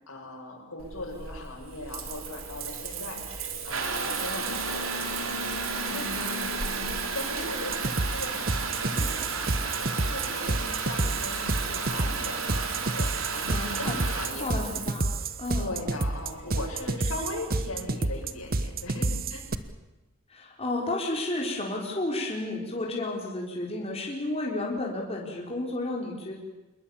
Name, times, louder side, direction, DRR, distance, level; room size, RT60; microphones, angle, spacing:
voice 1, 0.1-6.3 6.6-14.5 15.6-19.5, left 2 dB, 90° left, 1 dB, 6.8 m, -39 dB
Water tap faucet / Bathtub (filling or washing) / Trickle dribble, 0.8-19.7, right 4 dB, 70° right, 3.4 m, -33 dB
voice 2, 5.9-6.5 13.5-14.0 14.4-15.8 20.3-26.4, left 2 dB, 30° left, -1 dB, 4.5 m, -32 dB
sound 1, 7.7-19.5, right 2 dB, 45° right, 1.1 m, -29 dB
27.0 x 21.5 x 7.3 m, 1.1 s
head